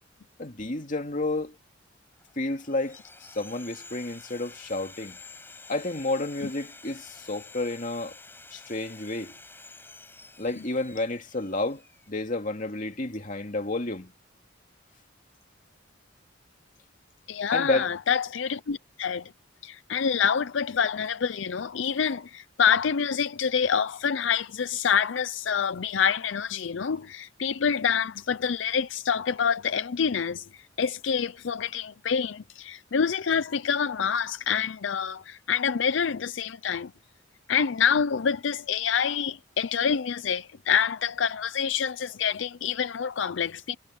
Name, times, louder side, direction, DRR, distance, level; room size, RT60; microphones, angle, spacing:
voice 1, 0.4-1.6 2.4-3.0 3.3-5.2 5.7-8.2 8.5-9.3 10.4-11.8 12.1-14.1 17.5-17.9, left 2 dB, 40° left, 2.5 m, -30 dB
Sawing, 2.2-12.1, left 3 dB, 10° left, 6.1 m, -49 dB
voice 2, 17.3-19.3 19.6-36.9 37.5-43.7, left 7 dB, 75° left, 0.5 m, -27 dB
head